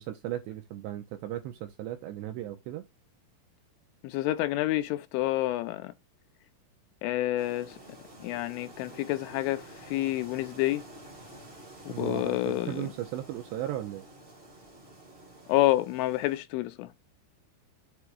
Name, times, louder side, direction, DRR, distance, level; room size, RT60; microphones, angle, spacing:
voice 1, 0.0-2.8 11.9-14.1, right 12 dB, 80° right, 2.6 m, -36 dB
voice 2, 4.0-5.9 7.0-7.8 8.2-10.8 11.9-12.8 15.5-17.0, left 16 dB, 85° left, 2.9 m, -28 dB
sound 1, 7.4-16.4, right 1 dB, 45° right, 0.7 m, -50 dB
7.7 x 3.5 x 4.5 m
omnidirectional pair, 5.8 m